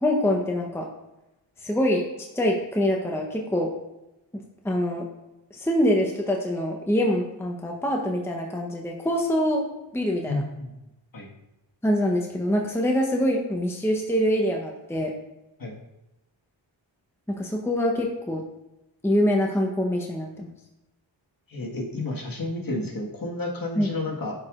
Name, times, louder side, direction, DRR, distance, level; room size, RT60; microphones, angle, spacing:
voice 1, 0.0-0.9 1.6-2.0 2.3-3.7 4.6-5.1 5.5-9.6 9.9-10.4 11.8-15.1 17.3-18.4 19.0-20.5 23.8-23.9, equal, 5° left, 0 dB, 0.8 m, -24 dB
voice 2, 10.3-10.7 11.1-11.3 15.6-15.7 21.5-24.3, left 2 dB, 45° left, -1 dB, 1.7 m, -31 dB
11.0 x 4.8 x 2.5 m, 0.94 s
cardioid pair, 70°, 46 cm